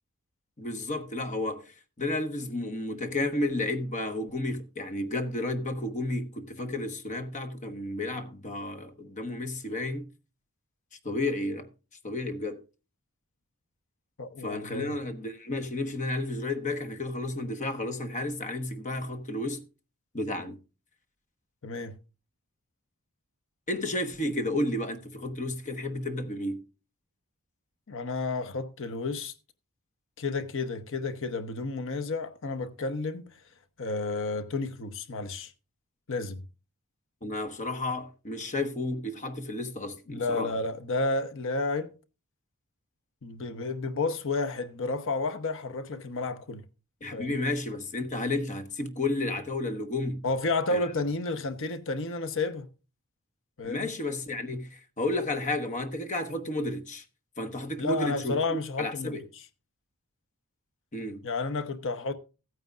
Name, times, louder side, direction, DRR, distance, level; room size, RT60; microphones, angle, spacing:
voice 1, 0.6-10.1 11.0-11.7 12.0-12.6 14.4-19.6 20.1-20.6 23.7-26.6 37.2-40.5 47.0-50.2 50.7-50.8 53.6-57.0 57.4-59.3 60.9-61.2, left 2 dB, 35° left, 1.2 m, -32 dB
voice 2, 14.2-15.0 21.6-22.0 27.9-29.3 30.2-33.3 33.8-35.5 36.1-36.4 40.1-41.9 43.2-46.6 47.1-47.4 50.2-52.7 53.6-53.9 57.8-59.2 61.2-62.1, left 3 dB, 60° left, 0.9 m, -31 dB
15.5 x 9.3 x 2.4 m
head